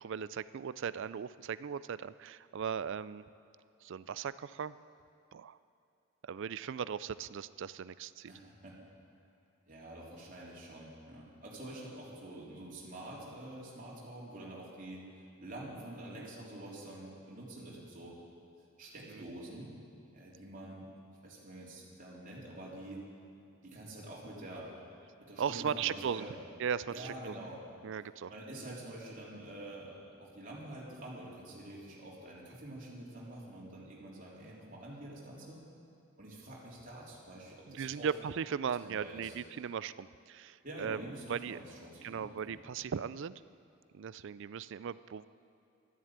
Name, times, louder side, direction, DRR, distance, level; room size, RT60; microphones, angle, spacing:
voice 1, 0.0-3.2 3.8-4.7 5.3-5.6 6.2-8.3 16.2-16.3 19.1-19.3 25.4-26.3 26.6-27.4 27.8-28.3 28.6-28.8 37.7-41.0 41.3-41.6 42.0-43.4 43.9-45.2, right 7 dB, 60° right, 17 dB, 0.4 m, -38 dB
voice 2, 8.3-8.8 9.7-15.1 15.4-18.2 18.8-19.8 20.1-20.9 21.2-23.1 23.6-24.8 25.2-26.4 26.9-27.6 28.3-35.6 36.2-38.1 38.8-39.4 40.6-42.6, right 1 dB, 40° right, -4 dB, 3.5 m, -47 dB
12.5 x 11.0 x 8.9 m, 2.7 s
head